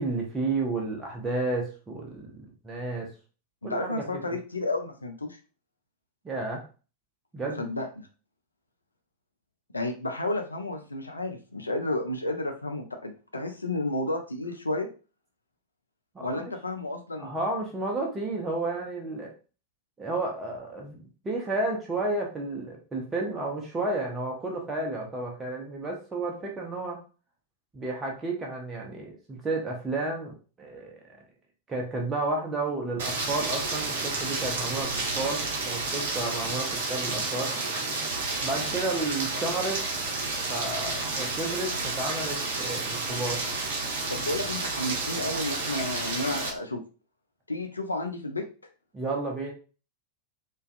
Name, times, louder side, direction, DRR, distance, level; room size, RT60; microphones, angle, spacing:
voice 1, 0.0-3.1 3.6-4.0 6.2-6.6 7.3-7.6 16.1-16.4 17.2-19.3 20.0-27.0 27.7-31.2 31.7-37.5 38.4-39.8 40.5-43.5 48.9-49.5, right 2 dB, 15° right, 0 dB, 0.6 m, -32 dB
voice 2, 3.6-5.4 7.6-8.1 9.7-14.9 16.2-17.3 44.1-46.8 47.5-48.4, left 2 dB, 80° left, 4 dB, 0.3 m, -31 dB
Rain, 33.0-46.5, right 3 dB, 60° right, 0.6 m, -31 dB
2.4 x 2.2 x 2.5 m, 0.35 s
figure-of-eight pair, 90°, 0 cm